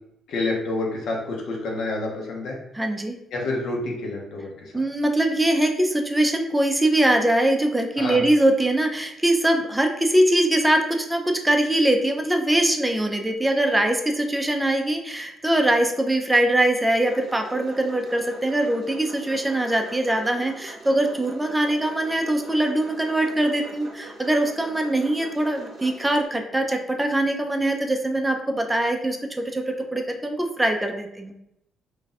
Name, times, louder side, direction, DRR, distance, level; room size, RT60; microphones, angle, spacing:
voice 1, 0.3-2.6 3.3-4.8 8.0-8.2, left 2 dB, 75° left, -1 dB, 0.9 m, -28 dB
voice 2, 2.7-3.2 4.7-31.3, right 1 dB, 10° right, 3 dB, 0.4 m, -22 dB
sound 1, 17.0-26.3, right 2 dB, 40° right, 0.7 m, -43 dB
2.6 x 2.3 x 3.9 m, 0.81 s
cardioid pair, 90°, 0 cm